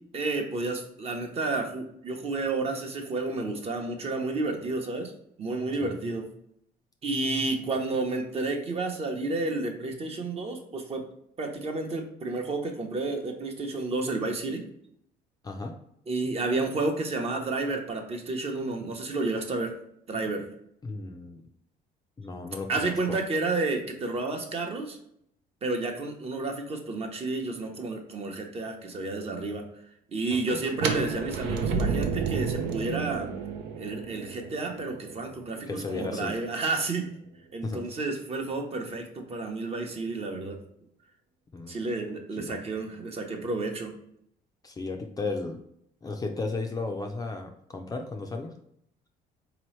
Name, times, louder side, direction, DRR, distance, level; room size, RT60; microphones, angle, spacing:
voice 1, 0.1-5.1 5.4-6.3 7.0-11.0 11.4-14.6 16.1-19.7 20.1-20.5 22.7-25.0 25.6-29.6 30.1-33.3 33.8-37.1 37.5-40.6 41.7-43.9, right 3 dB, 35° right, 3 dB, 0.8 m, -31 dB
voice 2, 15.4-15.7 20.8-21.4 22.2-23.2 30.3-30.6 35.7-36.3 37.6-37.8 41.5-41.8 42.3-42.6 44.6-45.6 46.0-48.5, left 3 dB, 20° left, 3 dB, 0.4 m, -34 dB
sound 1, 30.8-36.6, right 5 dB, 85° right, 0.6 m, -31 dB
4.0 x 3.0 x 3.1 m, 0.71 s
cardioid pair, 110°, 17 cm